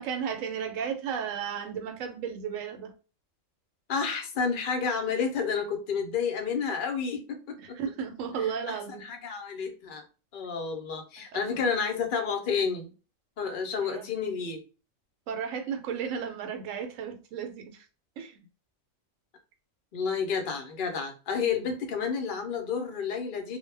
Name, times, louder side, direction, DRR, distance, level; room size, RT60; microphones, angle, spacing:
voice 1, 0.0-2.9 5.0-5.1 7.6-9.0 11.3-11.6 13.8-14.2 15.3-17.9 18.2-18.4, right 7 dB, 80° right, 0.9 m, -34 dB
voice 2, 3.9-7.8 8.3-10.0 10.3-12.9 13.4-14.6 19.9-23.6, left 6 dB, 55° left, 0.6 m, -30 dB
2.2 x 2.1 x 3.2 m
omnidirectional pair, 1.3 m